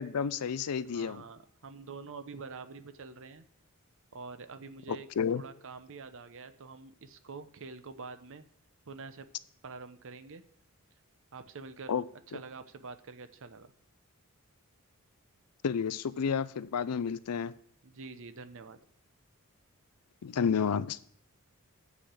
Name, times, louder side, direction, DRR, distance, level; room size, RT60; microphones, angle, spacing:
voice 1, 0.0-1.2 4.9-5.4 11.9-12.0 15.6-17.5 20.2-21.0, left 6 dB, 90° left, 16 dB, 0.5 m, -31 dB
voice 2, 0.8-3.4 4.1-5.1 5.3-8.4 8.9-9.3 9.6-10.4 11.3-11.9 12.3-13.7 17.8-18.8, right 4 dB, 60° right, 11 dB, 0.7 m, -46 dB
8.4 x 5.0 x 7.4 m, 0.63 s
head